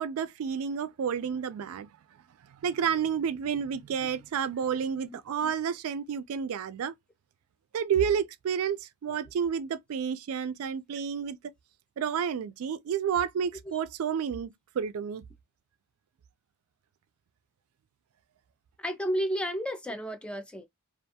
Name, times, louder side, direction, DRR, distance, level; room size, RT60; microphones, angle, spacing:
voice 1, 0.0-1.9 2.6-6.9 7.7-11.4 12.0-15.2, right 7 dB, 85° right, 0.3 m, -30 dB
voice 2, 5.1-5.5 18.8-20.7, equal, 5° left, 0.4 m, -32 dB
2.4 x 2.2 x 2.6 m
head